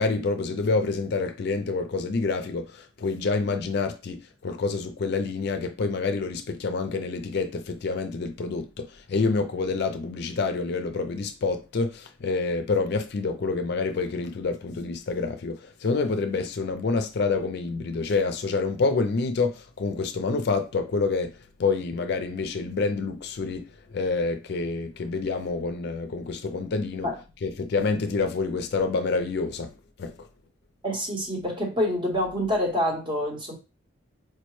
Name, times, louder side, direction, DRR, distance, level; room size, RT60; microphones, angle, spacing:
voice 1, 0.0-23.7 23.9-27.1 27.4-29.7 30.0-30.2, left 4 dB, 55° left, 0.4 m, -27 dB
voice 2, 30.8-33.6, equal, 25° right, 0.8 m, -27 dB
4.5 x 2.1 x 3.1 m
head